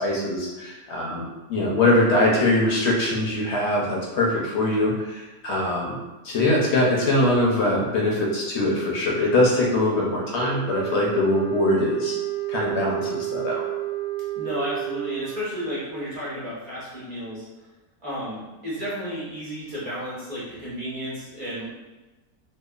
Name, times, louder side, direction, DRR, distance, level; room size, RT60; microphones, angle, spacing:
voice 1, 0.0-6.0 6.2-12.1 12.5-13.6, left 1 dB, 65° left, -3 dB, 0.7 m, -22 dB
sound 1, 10.6-15.5, right 14 dB, 85° right, 1.1 m, -30 dB
voice 2, 14.3-17.4 18.0-21.7, equal, 30° right, -9 dB, 0.7 m, -32 dB
2.8 x 2.2 x 2.3 m, 1.1 s
omnidirectional pair, 1.6 m